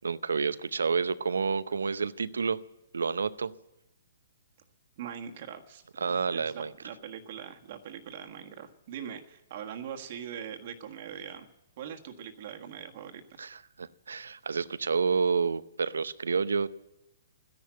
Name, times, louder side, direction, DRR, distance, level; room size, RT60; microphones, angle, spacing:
voice 1, 0.0-2.6 2.9-3.5 6.0-6.7 13.4-16.7, right 5 dB, 80° right, 16 dB, 0.6 m, -29 dB
voice 2, 5.0-11.5 11.8-13.4, right 8 dB, 50° right, 4 dB, 1.6 m, -42 dB
13.0 x 10.5 x 9.0 m, 0.89 s
hypercardioid pair, 130°, 0 cm